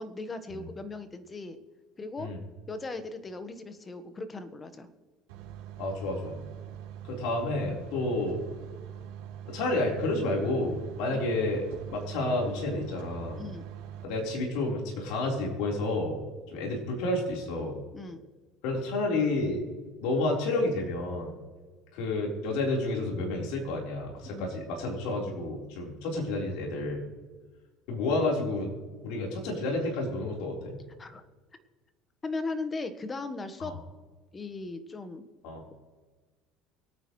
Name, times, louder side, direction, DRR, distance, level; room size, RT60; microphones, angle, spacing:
voice 1, 0.0-1.6 2.0-2.3 2.7-4.9 11.1-11.2 13.4-13.6 17.9-18.2 24.3-24.5 31.0-31.2 32.2-33.7 34.3-35.2, left 3 dB, 25° left, 10 dB, 1.4 m, -37 dB
sound 1, 5.3-14.0, right 10 dB, 85° right, 3.6 m, -43 dB
voice 2, 5.8-6.4 7.0-8.4 9.5-13.4 14.0-16.2 16.5-17.8 18.6-19.6 20.0-21.3 21.9-27.0 27.9-28.7 29.0-30.8 33.6-33.7 35.4-35.6, left 2 dB, 75° left, -1 dB, 4.2 m, -30 dB
24.0 x 9.2 x 3.2 m, 1.4 s
supercardioid pair, 100°, 0 cm